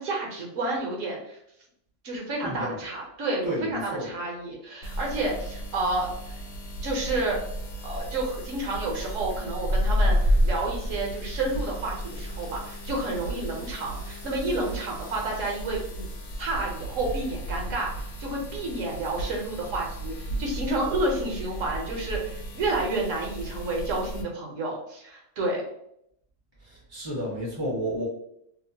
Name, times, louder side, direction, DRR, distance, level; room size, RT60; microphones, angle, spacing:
voice 1, 0.0-1.4 2.0-6.3 6.8-7.4 7.8-16.1 16.4-25.6, right 2 dB, 70° right, -1 dB, 1.0 m, -30 dB
voice 2, 2.4-2.8 3.4-4.1 26.6-28.1, equal, 25° left, -6 dB, 0.6 m, -32 dB
sound 1, 4.8-24.2, equal, 90° left, 1.1 m, -32 dB
2.8 x 2.1 x 2.7 m, 0.74 s
omnidirectional pair, 1.5 m